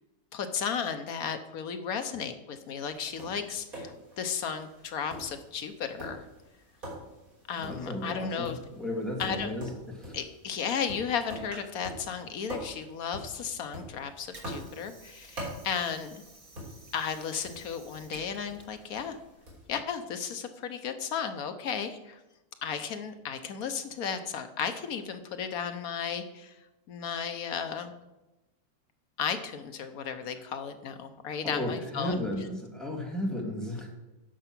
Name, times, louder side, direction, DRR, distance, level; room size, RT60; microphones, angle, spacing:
voice 1, 0.3-6.3 7.5-8.6 9.2-9.5 10.1-16.2 16.9-19.2 19.7-22.2 22.6-26.6 26.9-27.9 29.2-32.2, left 7 dB, 75° left, 8 dB, 1.3 m, -34 dB
Tap, 2.9-19.7, equal, 65° right, 4.2 m, -46 dB
voice 2, 7.6-10.2 31.4-33.9, left 1 dB, ahead, -2 dB, 2.2 m, -34 dB
Water / Sink (filling or washing), 14.1-19.8, right 2 dB, 25° right, 1.3 m, -53 dB
10.0 x 6.8 x 6.0 m, 1.0 s
omnidirectional pair, 1.6 m